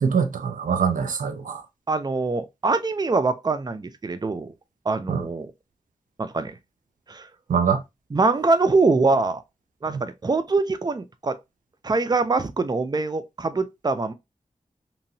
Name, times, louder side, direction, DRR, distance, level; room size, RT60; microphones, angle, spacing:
voice 1, 0.0-1.6 5.1-5.2 7.5-7.8 9.9-10.0, right 6 dB, 90° right, 0.4 m, -23 dB
voice 2, 1.9-4.5 4.9-5.5 6.2-6.5 7.1-7.3 8.1-9.4 9.8-11.4 11.8-14.1, right 3 dB, 30° right, 0.5 m, -23 dB
3.0 x 2.6 x 2.6 m
cardioid pair, 50°, 13 cm